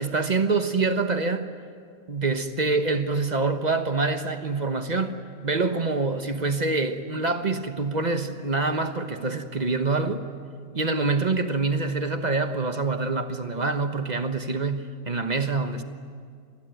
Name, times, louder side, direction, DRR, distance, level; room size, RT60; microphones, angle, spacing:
voice 1, 0.0-1.5 2.1-10.3 10.7-15.8, right 3 dB, 30° right, 1.1 m, -26 dB
28.0 x 20.5 x 9.2 m
omnidirectional pair, 1.9 m